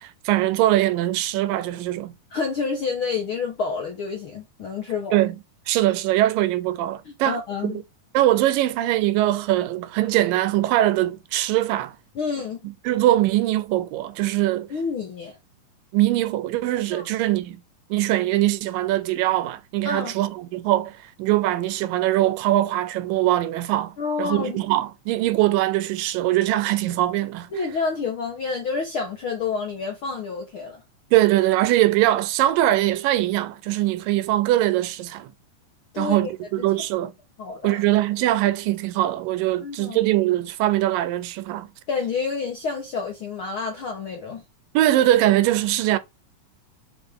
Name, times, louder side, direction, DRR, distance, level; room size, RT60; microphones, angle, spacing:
voice 1, 0.0-2.1 5.1-5.4 5.7-7.4 7.6-7.8 8.1-11.9 12.9-14.7 15.9-17.6 17.9-27.5 31.1-35.3 36.0-37.1 37.6-41.7 44.7-46.0, right 14 dB, 80° right, 2.3 m, -22 dB
voice 2, 2.3-5.2 7.0-7.8 12.1-12.6 14.7-15.4 16.9-17.0 19.8-20.1 24.0-24.6 27.5-30.8 35.9-36.3 37.4-37.8 39.6-40.0 41.9-44.4, left 5 dB, 65° left, 1.3 m, -28 dB
7.1 x 4.2 x 3.7 m
omnidirectional pair, 4.0 m